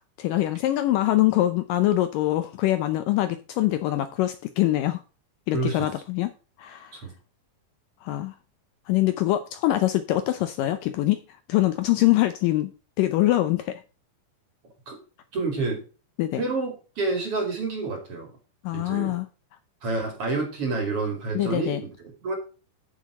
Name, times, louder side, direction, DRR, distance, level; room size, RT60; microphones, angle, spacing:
voice 1, 0.0-5.0 5.5-6.3 6.6-7.0 8.0-8.4 8.9-12.7 13.0-13.8 16.2-16.4 18.6-19.3 21.3-21.8, left 15 dB, 80° left, 10 dB, 2.0 m, -24 dB
voice 2, 5.5-5.9 6.9-7.1 14.9-15.0 15.3-15.8 16.4-18.3 18.7-19.2 19.8-21.9 22.2-22.3, right 3 dB, 45° right, 4 dB, 2.7 m, -28 dB
9.3 x 7.1 x 4.9 m, 0.35 s
omnidirectional pair, 4.4 m